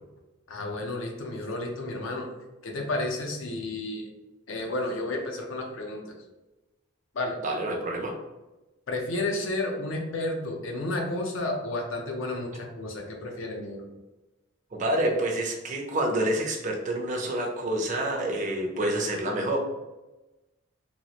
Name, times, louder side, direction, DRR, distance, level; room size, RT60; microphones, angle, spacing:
voice 1, 0.5-2.3 2.6-4.1 4.5-6.1 7.1-7.4 8.9-13.9, left 2 dB, 65° left, 2 dB, 0.5 m, -31 dB
voice 2, 7.4-8.1 14.7-19.6, right 1 dB, 35° right, 1 dB, 0.5 m, -28 dB
3.0 x 2.3 x 2.9 m, 1.1 s
head